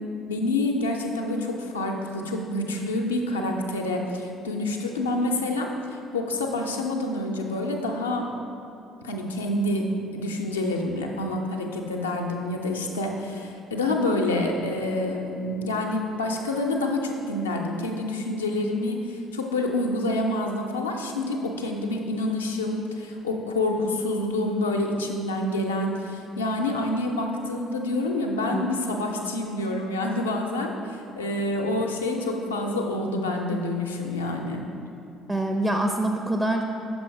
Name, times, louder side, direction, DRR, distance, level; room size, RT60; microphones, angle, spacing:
voice 1, 0.0-8.3 9.0-34.6, left 2 dB, 80° left, 1 dB, 0.5 m, -27 dB
voice 2, 35.3-36.7, right 1 dB, 20° right, 4 dB, 0.4 m, -25 dB
6.2 x 4.2 x 4.5 m, 2.8 s
figure-of-eight pair, 50°, 0 cm